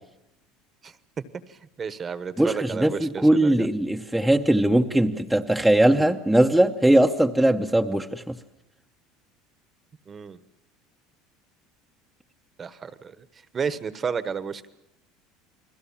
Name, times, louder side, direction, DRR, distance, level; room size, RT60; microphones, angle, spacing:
voice 1, 1.5-3.7 10.1-10.4 12.6-13.2 13.5-14.7, right 6 dB, 25° right, 13 dB, 1.1 m, -32 dB
voice 2, 2.4-8.3, right 1 dB, ahead, 2 dB, 0.9 m, -20 dB
29.0 x 21.0 x 7.3 m, 0.87 s
supercardioid pair, 135°, 0 cm